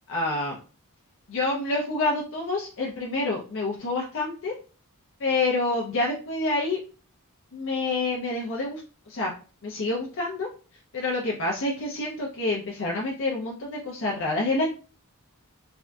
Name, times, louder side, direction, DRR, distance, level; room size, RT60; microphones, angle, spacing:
voice 1, 0.1-0.6 1.3-4.5 5.2-6.8 7.5-8.8 9.1-9.3 9.6-10.5 10.9-14.7, left 2 dB, 60° left, -2 dB, 0.6 m, -27 dB
3.5 x 2.5 x 2.2 m, 0.36 s
head